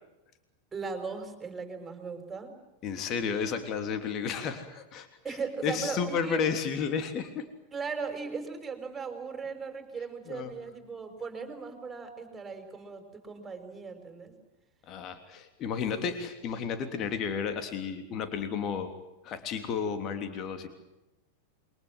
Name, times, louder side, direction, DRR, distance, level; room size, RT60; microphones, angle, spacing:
voice 1, 0.7-2.5 5.2-6.4 7.7-14.3, right 5 dB, 15° right, 6 dB, 5.9 m, -38 dB
voice 2, 2.8-5.1 5.6-7.5 10.3-10.5 14.9-18.9 19.2-20.7, left 6 dB, 35° left, 8 dB, 3.2 m, -32 dB
28.5 x 24.5 x 7.6 m, 0.95 s
figure-of-eight pair, 90°, 0 cm